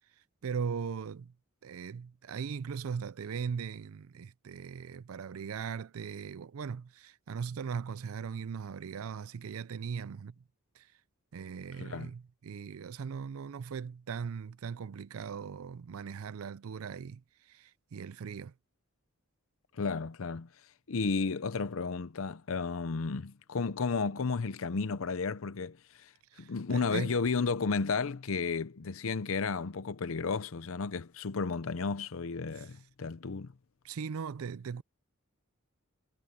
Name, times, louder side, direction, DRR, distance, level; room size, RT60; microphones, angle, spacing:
voice 1, 0.4-1.3 1.6-10.4 10.7-10.9 11.3-18.5 26.3-27.2 32.5-32.7 33.8-34.8, right 6 dB, 85° right, 0.4 m, -39 dB
voice 2, 19.7-20.5 20.9-26.1 26.4-33.5, left 4 dB, 70° left, 0.7 m, -33 dB
head